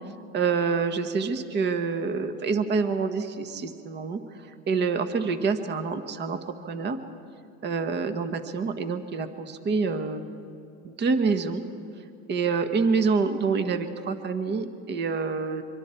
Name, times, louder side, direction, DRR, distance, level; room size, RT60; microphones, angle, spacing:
voice 1, 0.3-4.2 4.7-6.4 6.6-7.0 7.6-10.2 10.8-11.6 12.3-15.6, right 5 dB, 30° right, 9 dB, 1.5 m, -27 dB
24.5 x 24.0 x 4.5 m, 2.5 s
supercardioid pair, 115°, 32 cm